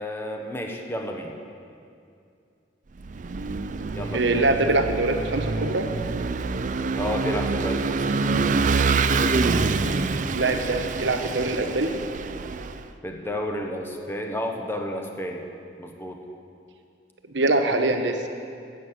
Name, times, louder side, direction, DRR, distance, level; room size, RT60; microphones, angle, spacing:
voice 1, 0.0-1.4 3.9-4.9 7.0-8.5 13.0-15.4 15.8-16.2, equal, 15° left, 2 dB, 1.1 m, -32 dB
Vehicle / Engine, 3.0-12.8, right 4 dB, 45° right, 0.4 m, -26 dB
voice 2, 4.1-5.9 10.3-11.9 17.3-18.3, right 2 dB, 90° right, 6 dB, 1.0 m, -23 dB
11.0 x 7.4 x 8.6 m, 2.4 s
head